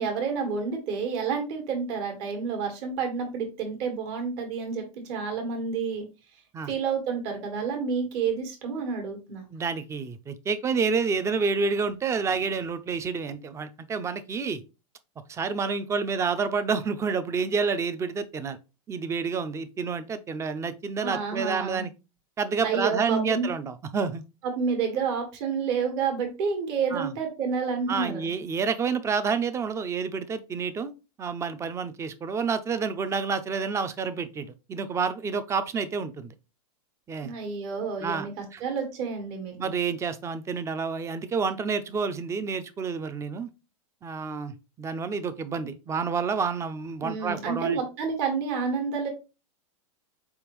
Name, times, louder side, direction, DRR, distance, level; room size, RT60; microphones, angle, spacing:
voice 1, 0.0-6.0 6.7-9.4 21.0-21.8 22.6-23.5 24.5-28.2 37.2-39.7 47.0-49.1, right 5 dB, 55° right, 1.5 m, -29 dB
voice 2, 9.5-14.6 15.3-18.6 18.9-21.9 22.4-24.2 26.9-27.1 27.9-30.9 31.2-36.3 37.1-37.3 38.0-38.3 38.5-38.6 39.6-43.5 44.0-47.8, right 5 dB, 15° right, 0.4 m, -29 dB
4.5 x 3.5 x 3.0 m
hypercardioid pair, 125°, 18 cm